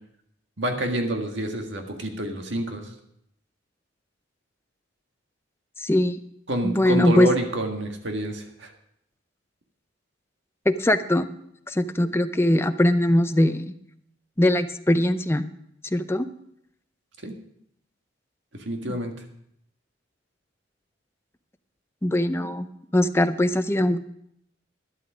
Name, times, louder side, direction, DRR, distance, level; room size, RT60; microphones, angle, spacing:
voice 1, 0.6-2.9 6.5-8.7 17.2-17.4 18.6-19.1, right 1 dB, 70° right, 3 dB, 1.8 m, -28 dB
voice 2, 5.8-6.2 6.6-7.3 10.7-11.3 11.7-13.7 14.4-15.5 15.9-16.3 18.9-19.0 22.0-22.7 22.9-24.0, left 1 dB, 15° left, 10 dB, 0.5 m, -21 dB
12.0 x 11.5 x 5.0 m, 0.72 s
head